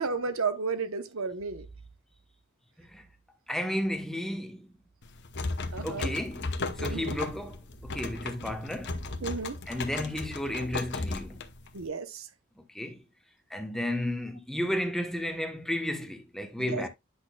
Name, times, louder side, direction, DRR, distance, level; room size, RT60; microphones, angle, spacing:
voice 1, 0.0-1.7 5.7-6.1 6.8-7.2 9.2-9.6 11.7-12.3 16.6-16.8, right 4 dB, 70° right, 1.0 m, -33 dB
voice 2, 3.5-4.7 5.8-9.0 9.7-11.4 12.6-13.0 13.5-16.9, left 1 dB, ahead, 1.0 m, -33 dB
sound 1, 5.0-11.9, left 3 dB, 55° left, 0.9 m, -35 dB
10.0 x 6.2 x 2.3 m
head